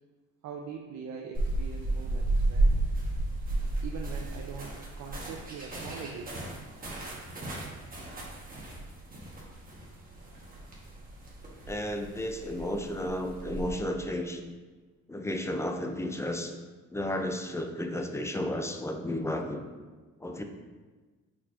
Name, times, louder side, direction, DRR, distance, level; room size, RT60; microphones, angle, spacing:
voice 1, 0.4-2.8 3.8-6.3, right 6 dB, 65° right, 0 dB, 0.5 m, -42 dB
sound 1, 1.3-13.8, right 2 dB, 30° right, 1.1 m, -33 dB
voice 2, 11.7-14.4 15.1-16.5 16.9-19.7 20.2-20.4, left 1 dB, 10° left, 5 dB, 0.3 m, -33 dB
4.5 x 4.1 x 2.4 m, 1.3 s
cardioid pair, 90°, 30 cm